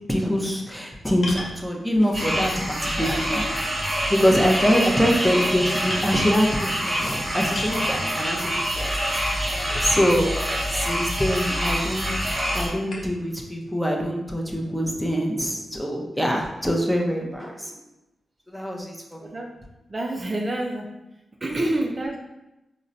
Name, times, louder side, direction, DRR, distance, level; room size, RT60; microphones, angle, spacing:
voice 1, 0.1-3.4 4.1-8.8 9.1-9.2 9.8-10.3 10.7-12.1 12.5-17.8 18.5-19.3, equal, ahead, 0 dB, 0.6 m, -24 dB
sound 1, 1.2-1.6 2.5-2.6 3.0-3.9 4.3-4.6 5.3-5.5 5.9-6.1 7.5-7.9 9.7-10.2 11.0-11.1 12.9-13.2, left 1 dB, 65° left, 0.7 m, -35 dB
sound 2, 2.1-12.7, equal, 15° right, 1.2 m, -26 dB
voice 2, 19.2-19.5 19.9-20.9 21.4-22.2, right 1 dB, 40° right, 0 dB, 0.4 m, -27 dB
3.7 x 2.1 x 2.6 m, 0.95 s
supercardioid pair, 45°, 0 cm